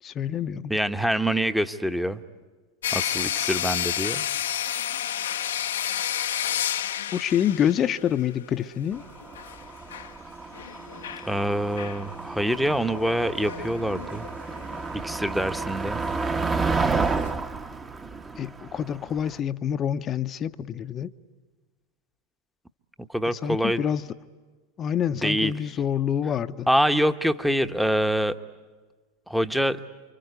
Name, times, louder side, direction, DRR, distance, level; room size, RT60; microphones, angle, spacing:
voice 1, 0.0-0.7 7.1-9.0 18.4-21.1 23.3-24.1 24.8-26.7, left 9 dB, 35° left, 9 dB, 0.8 m, -27 dB
voice 2, 0.7-2.2 2.9-4.2 11.2-14.3 14.9-16.0 23.0-23.8 25.2-25.5 26.7-28.4 29.3-29.8, equal, ahead, 10 dB, 1.1 m, -25 dB
sound 1, 2.8-8.2 8.6-8.7 9.2-10.1 10.5-11.3 11.8-12.1 12.7-14.9 15.3-15.4 16.0-16.1 16.8-17.3, left 10 dB, 80° left, 0.8 m, -31 dB
Motor vehicle (road), 9.0-19.3, right 4 dB, 20° right, 1.2 m, -31 dB
29.0 x 25.0 x 8.2 m, 1.4 s
hypercardioid pair, 95°, 0 cm